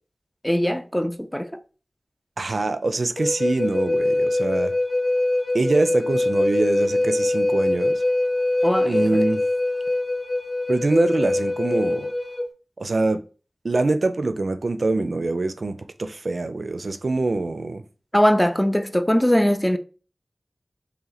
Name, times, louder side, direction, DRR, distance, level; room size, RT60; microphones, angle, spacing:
voice 1, 0.4-1.5 8.6-9.2 18.1-19.8, equal, 10° left, 0.4 m, -21 dB
voice 2, 2.4-4.7 5.5-7.9 8.8-9.4 10.7-12.1 12.8-13.2 13.6-17.8, right 2 dB, 75° right, 0.4 m, -24 dB
Wind instrument woodwind instrument, 3.2-12.5, left 2 dB, 60° left, 0.6 m, -23 dB
2.9 x 2.8 x 3.9 m
wide cardioid pair, 55°, 0 cm